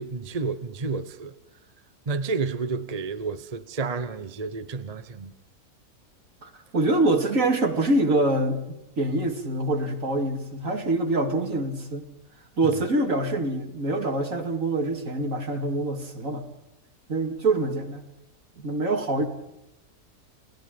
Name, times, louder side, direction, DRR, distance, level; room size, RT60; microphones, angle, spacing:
voice 1, 0.0-1.3 2.1-5.3 12.6-12.7 19.2-19.3, right 4 dB, 30° right, 0.9 m, -30 dB
voice 2, 6.4-12.1 12.6-16.4 17.1-18.1 18.6-19.3, right 2 dB, 60° right, 3.1 m, -25 dB
29.5 x 18.5 x 5.3 m
omnidirectional pair, 1.6 m